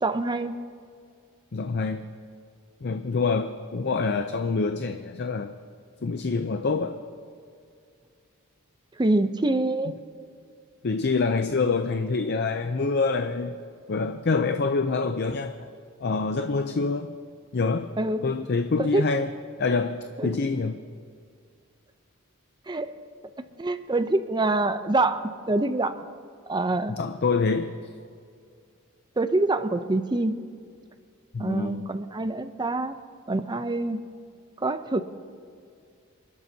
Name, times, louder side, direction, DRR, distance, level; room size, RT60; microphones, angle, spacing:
voice 1, 0.0-0.6 9.0-9.9 18.0-18.3 18.9-19.0 20.2-20.3 22.7-22.9 23.6-25.9 26.5-26.9 29.2-30.4 31.4-33.0 33.3-34.0 34.6-35.0, right 2 dB, 20° right, 10 dB, 0.6 m, -25 dB
voice 2, 1.5-2.0 2.8-5.5 6.0-7.0 10.8-13.6 13.9-15.5 16.0-17.1 17.5-17.9 18.2-19.3 19.6-20.8 26.9-27.7 31.3-31.9, left 4 dB, 50° left, 8 dB, 0.5 m, -26 dB
28.0 x 12.0 x 2.8 m, 2.3 s
head